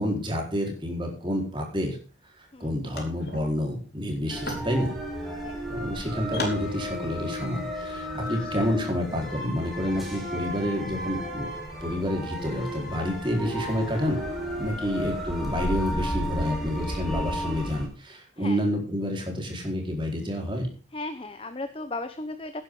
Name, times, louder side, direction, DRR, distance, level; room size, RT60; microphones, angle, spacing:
voice 1, 0.0-2.0 2.3-4.9 5.7-11.5 11.8-14.2 14.6-20.7, equal, 25° right, 1 dB, 4.5 m, -29 dB
sound 1, 2.5-2.6 2.9-7.7, left 2 dB, 55° left, 4.5 m, -39 dB
sound 2, 4.3-17.9, equal, ahead, 4.7 m, -33 dB
voice 2, 5.4-5.8 8.2-8.7 14.7-14.9 18.4-18.6 20.9-22.6, left 2 dB, 30° left, 10 dB, 1.0 m, -37 dB
17.5 x 11.0 x 3.9 m, 0.35 s
head